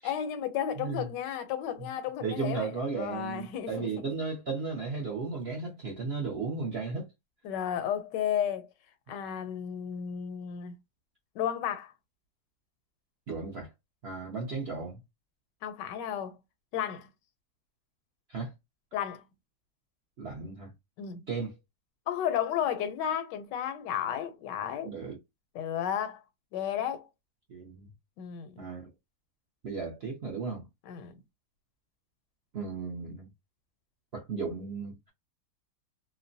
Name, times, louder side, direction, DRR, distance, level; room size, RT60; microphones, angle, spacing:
voice 1, 0.0-2.7 3.0-3.9 7.4-8.7 9.1-10.7 11.3-11.9 15.6-16.4 16.7-17.1 18.9-19.2 21.0-21.3 22.1-24.9 25.5-26.2 26.5-27.1 28.2-28.7 30.9-31.1, left 9 dB, 85° left, 1.2 m, -33 dB
voice 2, 0.8-1.1 2.2-7.1 13.3-13.7 14.0-15.0 18.3-18.5 20.2-20.7 21.3-21.6 24.8-25.2 27.5-27.9 28.6-28.9 29.6-30.7 32.5-33.3 34.1-35.1, right 4 dB, 60° right, 0.6 m, -35 dB
2.8 x 2.1 x 2.5 m
omnidirectional pair, 1.9 m